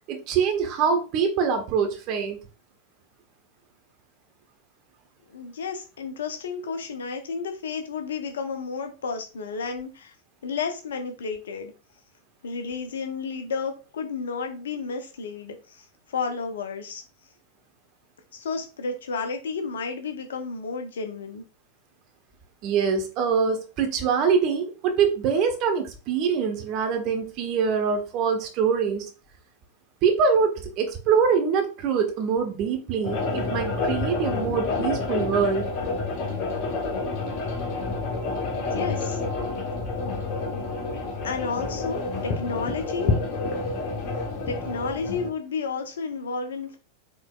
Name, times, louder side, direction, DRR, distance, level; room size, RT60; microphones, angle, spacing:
voice 1, 0.1-2.4 22.6-29.0 30.0-35.7, right 6 dB, 40° right, 5 dB, 1.1 m, -24 dB
voice 2, 5.3-10.1 10.4-11.7 12.4-17.0 18.3-21.4 38.5-39.2 41.2-43.1 44.5-46.8, left 5 dB, 65° left, 6 dB, 0.8 m, -32 dB
sound 1, 33.0-45.3, left 3 dB, 40° left, 1.2 m, -29 dB
4.8 x 3.9 x 2.4 m, 0.33 s
figure-of-eight pair, 90°, 0 cm